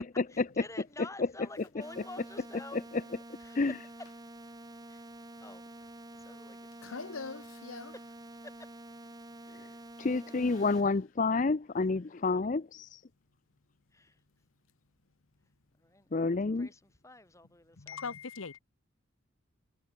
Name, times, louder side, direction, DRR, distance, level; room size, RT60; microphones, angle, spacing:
voice 1, 0.3-2.8 3.4-3.9 4.9-5.0 5.4-5.6 6.2-7.3 7.9-8.2 8.4-8.7 9.4-9.6 13.9-14.2 15.8-16.2 16.6-18.1, left 2 dB, 15° left, 4.7 m, -50 dB
sound 1, 1.8-10.8, right 1 dB, 20° right, 1.3 m, -48 dB
voice 2, 6.8-7.9 17.8-18.6, left 4 dB, 85° left, 1.1 m, -41 dB
voice 3, 10.0-13.0 16.1-16.7, left 3 dB, 40° left, 0.5 m, -29 dB
head